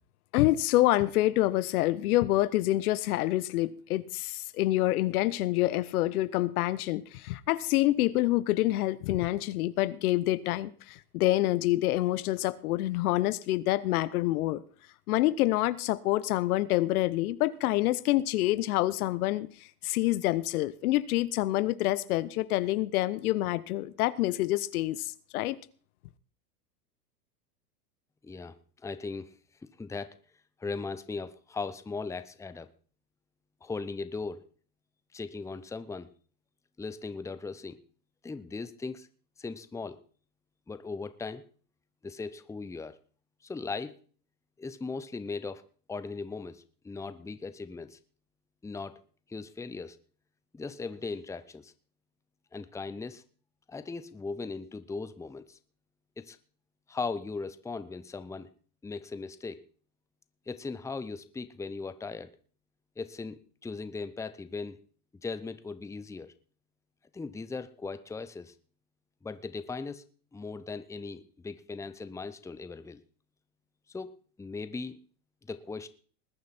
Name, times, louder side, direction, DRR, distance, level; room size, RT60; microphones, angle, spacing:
voice 1, 0.3-14.6 15.1-19.5 19.8-25.6, left 16 dB, 65° left, 1.0 m, -27 dB
voice 2, 28.2-28.5 28.8-29.3 29.8-30.1 30.6-32.7 33.6-34.4 35.1-36.1 36.8-37.8 38.2-39.1 39.4-40.0 40.7-41.4 42.0-42.9 43.4-43.9 44.6-45.6 45.9-48.0 48.6-49.0 49.3-50.0 50.5-51.7 52.5-53.2 53.7-55.6 56.2-56.4 56.9-58.5 58.8-59.6 60.5-62.3 63.0-64.8 65.2-66.3 67.1-68.5 69.2-70.0 70.3-73.0 73.9-74.1 74.4-75.0 75.5-75.9, left 4 dB, 5° left, 0.8 m, -38 dB
20.5 x 9.5 x 4.3 m
hypercardioid pair, 110°, 46 cm